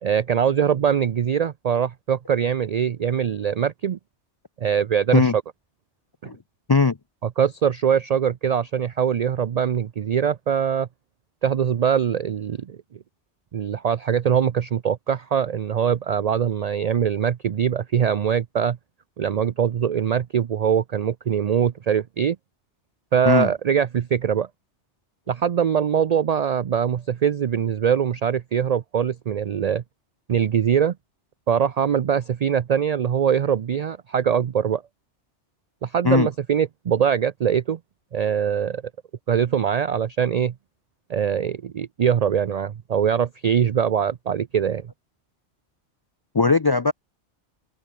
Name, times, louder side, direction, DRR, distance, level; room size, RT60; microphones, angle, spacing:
voice 1, 0.0-4.0 4.6-5.3 6.2-6.3 7.2-10.9 11.4-12.8 13.5-18.8 19.2-22.4 23.1-24.5 25.3-29.8 30.3-30.9 31.5-34.8 35.8-37.8 38.1-38.8 39.3-40.5 41.1-44.9, right 8 dB, 55° right, 0.4 m, -22 dB
voice 2, 46.3-46.9, left 4 dB, 35° left, 0.4 m, -18 dB
omnidirectional pair, 1.2 m